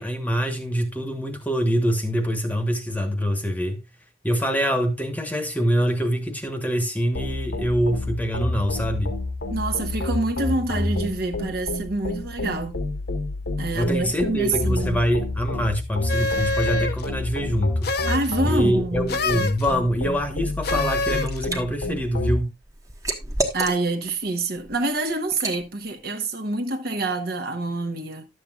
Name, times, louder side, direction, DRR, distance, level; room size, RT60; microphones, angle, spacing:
voice 1, 0.0-3.8 4.2-9.2 13.7-17.9 18.4-22.5, equal, 10° left, 1.2 m, -24 dB
sound 1, 7.1-22.4, left 2 dB, 80° left, 1.5 m, -29 dB
voice 2, 9.5-12.8 13.6-15.0 18.1-19.1 23.5-28.3, right 2 dB, 55° right, 1.2 m, -27 dB
sound 2, 16.1-17.1 17.8-18.3 19.1-19.7 20.6-21.4, left 3 dB, 55° left, 0.8 m, -26 dB
Liquid, 20.8-21.6 22.0-24.1 24.6-24.8 25.3-25.6, right 2 dB, 20° right, 1.1 m, -30 dB
11.5 x 7.8 x 2.4 m
head